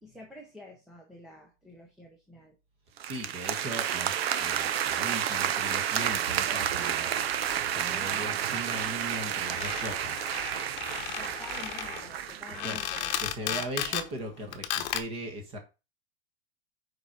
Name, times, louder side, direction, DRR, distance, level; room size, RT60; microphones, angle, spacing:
voice 1, 0.0-2.6 7.8-8.4 11.2-14.0, left 1 dB, ahead, -3 dB, 0.6 m, -48 dB
voice 2, 3.0-7.2 7.7-10.3 12.6-15.6, right 1 dB, 20° right, 5 dB, 1.2 m, -39 dB
sound 1, 3.0-13.3, right 10 dB, 80° right, 0.9 m, -31 dB
sound 2, 7.2-7.6 8.3-8.4 8.5-8.6 8.8-8.9 9.1-14.1 14.5-15.0, left 11 dB, 45° left, 0.9 m, -35 dB
5.4 x 4.8 x 5.8 m, 0.30 s
supercardioid pair, 180°, 30 cm